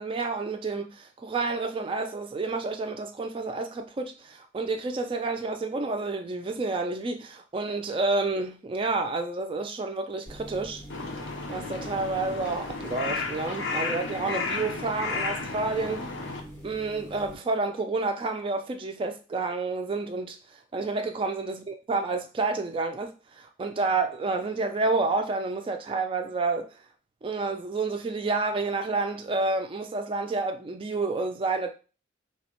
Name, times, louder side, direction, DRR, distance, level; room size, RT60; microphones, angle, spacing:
voice 1, 0.0-10.8 11.5-16.0 16.6-20.4 20.7-26.7 27.2-31.7, right 3 dB, 25° right, 0.3 m, -29 dB
sound 1, 10.3-17.3, equal, 5° left, 0.7 m, -44 dB
Crow, 10.9-16.4, left 4 dB, 65° left, 0.5 m, -33 dB
3.3 x 2.1 x 2.9 m
head